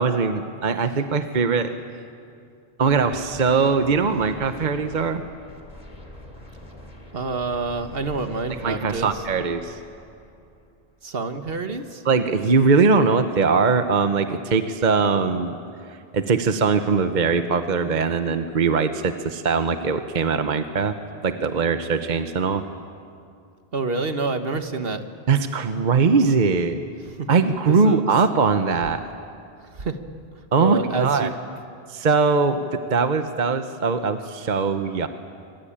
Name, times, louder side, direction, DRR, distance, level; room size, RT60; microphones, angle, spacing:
voice 1, 0.0-1.7 2.8-5.2 8.5-9.8 12.0-15.6 15.9-20.9 21.2-22.6 25.3-26.8 27.3-29.0 30.5-31.3 31.9-35.1, right 4 dB, 50° right, 8 dB, 1.0 m, -21 dB
sound 1, 2.8-11.0, left 1 dB, 40° left, 2.8 m, -43 dB
voice 2, 7.1-9.1 11.0-12.0 23.7-25.0 27.2-27.3 27.8-28.0 29.7-30.0 30.6-31.3, right 3 dB, 65° right, 8 dB, 1.6 m, -27 dB
26.0 x 22.5 x 8.8 m, 2.4 s
omnidirectional pair, 1.0 m